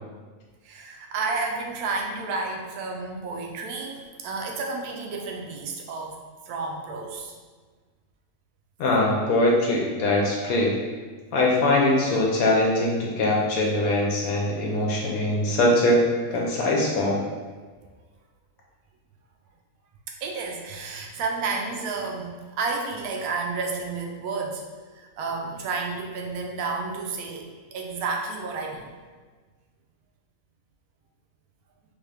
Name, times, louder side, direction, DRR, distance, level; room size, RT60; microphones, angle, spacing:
voice 1, 0.6-7.3 10.4-10.6 11.8-12.0 13.4-13.5 20.2-24.6 25.0-28.9, right 4 dB, 75° right, 1 dB, 1.0 m, -31 dB
voice 2, 8.8-10.7 11.3-16.0 16.3-17.2, left 1 dB, 70° left, -2 dB, 1.0 m, -22 dB
3.5 x 2.5 x 3.3 m, 1.4 s
omnidirectional pair, 1.7 m